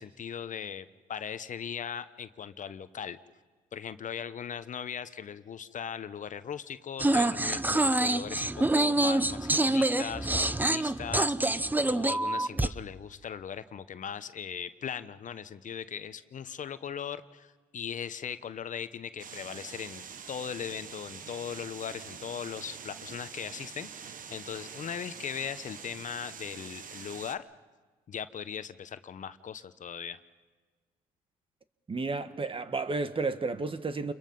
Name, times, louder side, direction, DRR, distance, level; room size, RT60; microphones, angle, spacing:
voice 1, 0.0-3.2 3.7-11.3 11.9-27.5 28.1-30.2, left 8 dB, 50° left, 1.0 m, -39 dB
sound 1, 7.0-12.7, right 2 dB, 10° right, 0.8 m, -26 dB
sound 2, 19.2-27.4, right 7 dB, 55° right, 1.4 m, -45 dB
voice 2, 31.9-34.1, right 3 dB, 30° right, 1.6 m, -32 dB
29.0 x 22.5 x 5.5 m
supercardioid pair, 65°, 17 cm